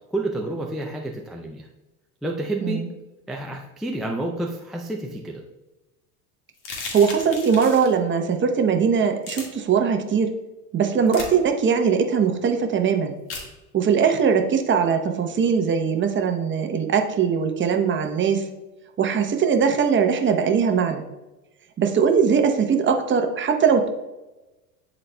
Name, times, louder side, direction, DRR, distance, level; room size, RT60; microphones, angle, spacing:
voice 1, 0.0-1.7 2.2-2.8 3.3-5.4, right 2 dB, ahead, -1 dB, 0.3 m, -29 dB
sound 1, 6.6-7.9 9.2-9.4 11.1-11.3 13.3-13.5, left 4 dB, 65° left, 1.8 m, -34 dB
voice 2, 6.9-10.3 10.7-13.2 13.7-18.4 19.0-21.0 21.8-23.9, right 6 dB, 25° right, 5 dB, 0.8 m, -21 dB
10.5 x 4.2 x 2.2 m, 1.1 s
hypercardioid pair, 95°, 42 cm